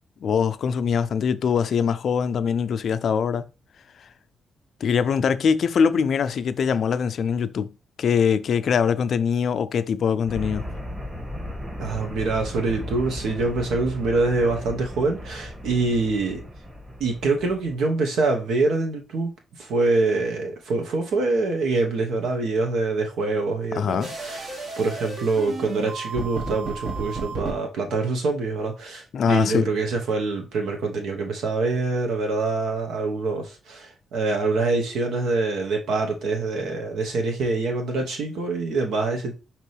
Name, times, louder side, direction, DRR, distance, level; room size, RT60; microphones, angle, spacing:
voice 1, 0.2-3.4 4.8-7.7 8.0-10.7 23.8-24.1 29.1-29.6, left 6 dB, 65° left, 0.4 m, -22 dB
sound 1, 10.3-17.7, left 1 dB, 30° right, 2.0 m, -36 dB
voice 2, 11.8-16.4 17.0-19.3 19.6-24.5 24.8-39.3, right 3 dB, 80° right, 1.1 m, -25 dB
sound 2, 24.0-27.6, right 3 dB, 55° right, 1.5 m, -33 dB
5.3 x 3.0 x 3.3 m
cardioid pair, 65°, 0 cm